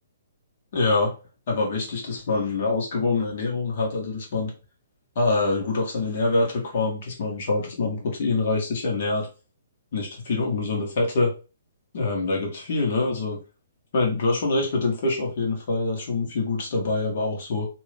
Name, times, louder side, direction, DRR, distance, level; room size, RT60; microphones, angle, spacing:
voice 1, 0.7-1.1 1.5-4.5 5.1-9.3 9.9-11.3 11.9-13.4 13.9-17.7, left 3 dB, 50° left, 0 dB, 1.4 m, -25 dB
3.0 x 2.6 x 3.3 m, 0.33 s
figure-of-eight pair, 125°, 0 cm